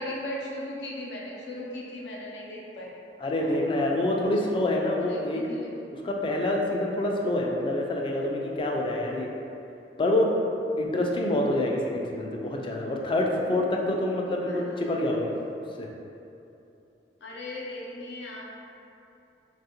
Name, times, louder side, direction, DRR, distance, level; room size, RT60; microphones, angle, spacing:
voice 1, 0.0-3.0 3.4-4.3 5.0-5.7 14.4-14.6 17.2-18.4, left 1 dB, 75° left, -3 dB, 0.6 m, -38 dB
voice 2, 3.2-5.5 5.9-9.3 10.0-10.3 10.8-15.3 15.8-15.9, left 1 dB, 30° left, 0 dB, 0.3 m, -26 dB
3.4 x 2.4 x 2.8 m, 2.8 s
head